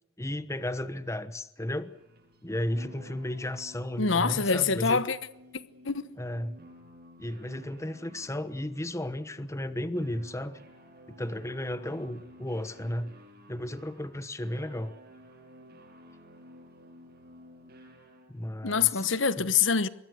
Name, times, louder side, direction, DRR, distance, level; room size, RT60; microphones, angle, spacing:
voice 1, 0.2-1.9 2.4-5.0 6.2-6.6 7.2-10.6 11.1-13.1 13.5-14.9 18.3-19.1, left 1 dB, 15° left, 1.1 m, -34 dB
sound 1, 1.7-18.5, equal, 55° right, 7.0 m, -53 dB
voice 2, 4.0-5.2 5.8-6.1 18.6-19.9, left 5 dB, 70° left, 1.1 m, -25 dB
25.0 x 22.0 x 6.6 m
head